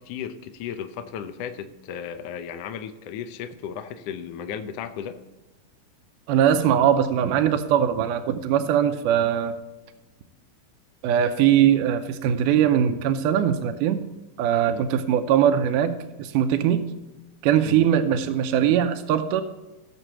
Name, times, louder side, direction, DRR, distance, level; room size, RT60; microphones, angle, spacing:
voice 1, 0.0-5.2 14.7-14.9 17.6-17.9, left 8 dB, 80° left, 7 dB, 1.4 m, -35 dB
voice 2, 6.3-9.6 11.0-14.0 14.4-16.9 17.4-19.4, right 9 dB, 85° right, 8 dB, 2.2 m, -21 dB
17.5 x 7.1 x 3.0 m, 1.1 s
omnidirectional pair, 3.7 m